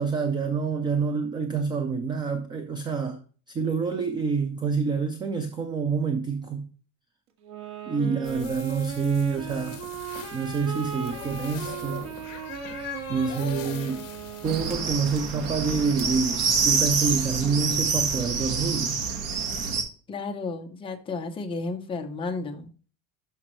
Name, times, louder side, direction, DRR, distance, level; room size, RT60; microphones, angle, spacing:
voice 1, 0.0-3.2 3.5-6.7 7.9-9.8 10.3-12.1 13.1-14.1 14.4-19.0, right 5 dB, 15° right, 0.3 m, -27 dB
sound 1, 7.4-15.3, right 9 dB, 80° right, 1.8 m, -38 dB
sound 2, 8.2-14.8, left 8 dB, 45° left, 2.4 m, -41 dB
sound 3, 14.4-19.8, right 5 dB, 45° right, 1.4 m, -27 dB
voice 2, 20.1-22.7, left 3 dB, 15° left, 0.7 m, -33 dB
12.0 x 5.2 x 3.1 m
cardioid pair, 175°, 35 cm